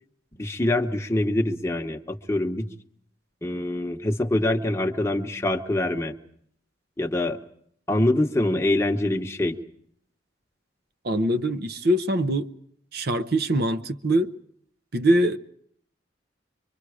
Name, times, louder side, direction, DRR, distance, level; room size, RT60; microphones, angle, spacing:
voice 1, 0.4-2.7 3.4-6.1 7.0-7.4 7.9-9.6, left 1 dB, 15° left, 1.1 m, -24 dB
voice 2, 11.0-12.5 12.9-14.3 14.9-15.4, right 1 dB, 55° right, 0.8 m, -23 dB
24.5 x 24.0 x 4.9 m
head